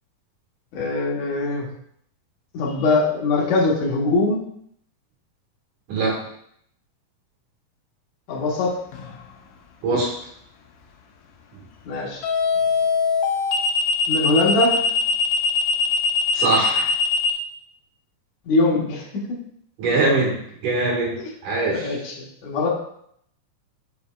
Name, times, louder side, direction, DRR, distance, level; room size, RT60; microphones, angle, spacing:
voice 1, 0.7-1.7 2.5-4.4 8.3-8.7 11.9-12.2 14.1-14.8 18.5-19.4 21.2-21.3 21.7-22.1 22.4-22.7, left 2 dB, 70° left, -4 dB, 2.6 m, -22 dB
sound 1, 8.9-9.3 12.2-17.3, left 4 dB, 85° left, 2.4 m, -21 dB
voice 2, 16.3-16.9 19.8-20.4 20.6-21.2 21.4-21.9, right 3 dB, 70° right, -2 dB, 3.2 m, -21 dB
6.8 x 6.7 x 2.4 m, 0.69 s
omnidirectional pair, 3.7 m